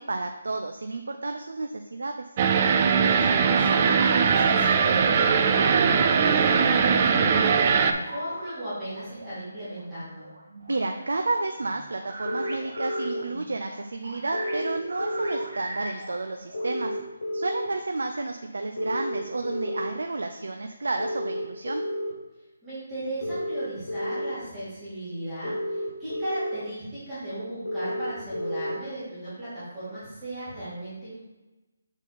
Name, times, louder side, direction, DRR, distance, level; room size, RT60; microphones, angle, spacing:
voice 1, 0.0-2.3 10.7-17.0 17.3-21.8, right 3 dB, 85° right, 5 dB, 0.5 m, -31 dB
sound 1, 2.4-7.9, right 6 dB, 20° right, 0.3 m, -20 dB
voice 2, 2.7-10.3 22.6-31.2, right 1 dB, 5° right, -16 dB, 2.1 m, -36 dB
sound 2, 5.5-16.7, right 1 dB, 50° right, 1.7 m, -40 dB
sound 3, 12.2-13.2 14.3-15.4 16.5-17.7 18.8-19.9 21.0-22.1 23.2-24.3 25.4-26.6 27.6-28.8, left 1 dB, 90° left, 2.0 m, -31 dB
7.1 x 4.1 x 4.1 m, 1.1 s
hypercardioid pair, 175°, 0 cm